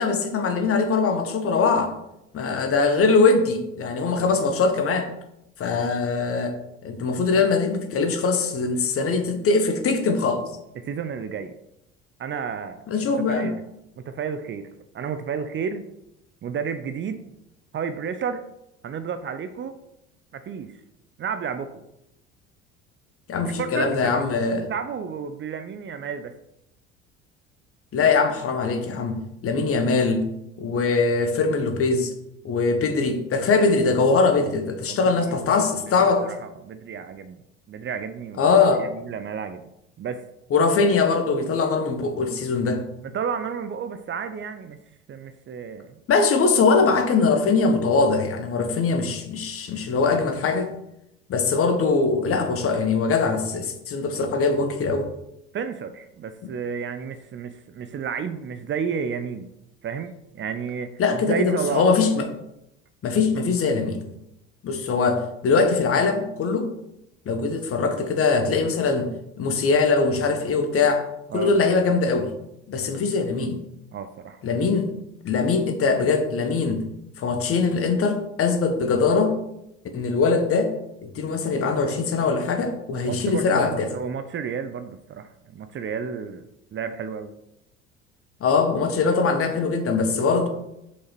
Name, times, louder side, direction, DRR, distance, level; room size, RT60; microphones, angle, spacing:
voice 1, 0.0-1.9 2.3-5.1 5.6-6.6 6.8-10.4 12.9-13.5 23.3-24.7 27.9-30.3 30.6-32.1 32.4-36.3 38.4-38.8 40.5-42.8 46.1-50.7 51.3-55.1 56.4-56.5 61.0-62.3 63.0-64.0 64.6-66.7 67.2-69.1 69.4-71.0 71.3-72.3 72.7-73.6 74.4-74.9 75.2-76.9 77.2-79.4 79.9-80.7 81.0-83.9 88.4-90.5, left 4 dB, 40° left, 7 dB, 1.4 m, -22 dB
voice 2, 10.8-11.5 12.2-12.8 13.3-13.6 14.1-14.7 14.9-15.9 16.4-17.2 17.7-18.4 18.8-19.7 20.3-20.8 21.2-21.8 23.5-24.2 24.6-26.3 34.9-35.4 36.0-37.4 37.7-39.6 40.0-40.2 43.1-44.8 45.1-46.0 55.5-59.5 59.8-61.8 71.3-71.5 73.9-74.4 82.9-86.4 86.7-87.3, right 6 dB, 35° right, 10 dB, 0.8 m, -31 dB
6.6 x 5.4 x 6.0 m, 0.84 s
figure-of-eight pair, 60°, 35 cm